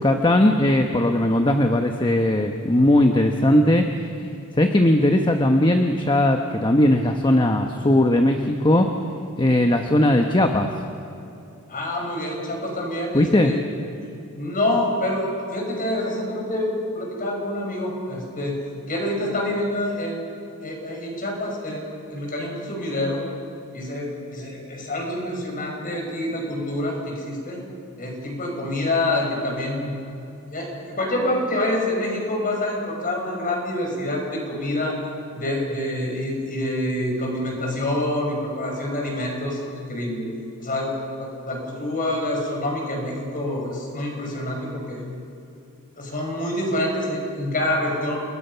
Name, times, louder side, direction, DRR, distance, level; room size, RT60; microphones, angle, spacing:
voice 1, 0.0-3.9 4.2-4.3 4.5-8.9 9.4-10.7 13.1-13.5, left 1 dB, 20° left, 4 dB, 1.0 m, -18 dB
voice 2, 11.7-13.6 14.3-20.4 20.6-23.2 23.7-27.6 28.0-30.0 30.5-35.0 35.3-39.6 39.9-40.3 40.6-45.0 46.0-48.2, left 1 dB, 40° left, 0 dB, 5.8 m, -27 dB
29.5 x 20.0 x 5.7 m, 2.8 s
head